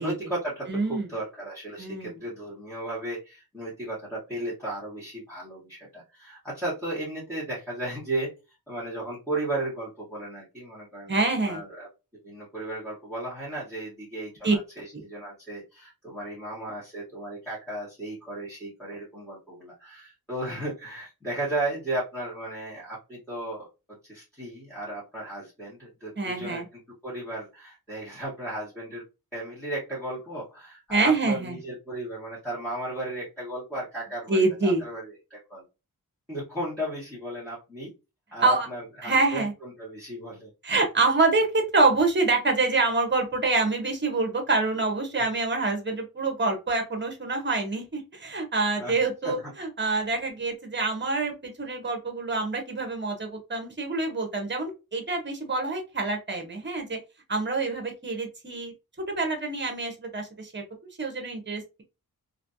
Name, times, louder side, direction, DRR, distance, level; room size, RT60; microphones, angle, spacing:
voice 1, 0.0-8.3 8.7-26.6 27.0-29.0 29.3-35.6 36.3-37.9 38.3-40.5 48.8-48.9 49.2-49.5, right 1 dB, 5° left, -9 dB, 1.6 m, -35 dB
voice 2, 0.7-1.1 1.8-2.2 11.1-11.6 14.4-14.6 14.9-15.0 26.2-26.7 30.9-31.6 34.3-34.8 38.4-38.7 39.0-39.5 40.6-57.0 57.3-58.7 59.1-60.6 61.0-61.8, right 3 dB, 30° right, 3 dB, 1.0 m, -26 dB
3.1 x 2.6 x 2.6 m, 0.28 s
wide cardioid pair, 140°, 36 cm